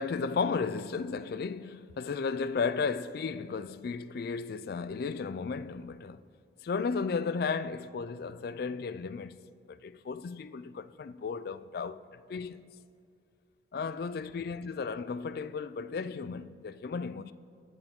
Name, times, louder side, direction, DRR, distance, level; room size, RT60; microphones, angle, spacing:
voice 1, 0.0-6.2 6.6-9.4 9.7-12.0 12.3-12.7 13.7-17.3, left 5 dB, 60° left, 0.4 m, -34 dB
21.0 x 7.1 x 3.6 m
head